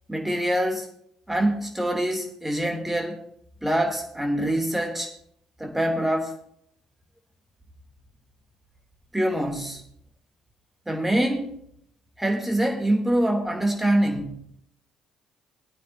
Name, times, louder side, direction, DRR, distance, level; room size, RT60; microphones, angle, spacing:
voice 1, 0.1-0.9 1.3-3.2 3.6-5.1 5.6-6.4 9.1-9.8 10.9-11.5 12.2-14.4, right 1 dB, 10° right, 2 dB, 3.1 m, -25 dB
20.5 x 9.1 x 2.8 m, 0.67 s
figure-of-eight pair, 45°, 2 cm